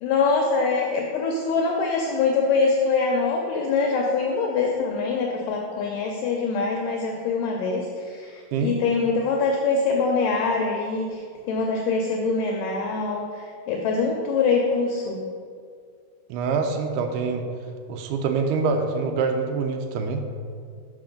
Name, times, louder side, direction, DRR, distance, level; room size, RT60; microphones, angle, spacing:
voice 1, 0.0-15.2, left 4 dB, 80° left, 1 dB, 2.0 m, -24 dB
voice 2, 16.3-17.4 17.9-20.2, right 5 dB, 80° right, 4 dB, 1.9 m, -25 dB
6.0 x 4.9 x 5.1 m, 2.2 s
omnidirectional pair, 4.1 m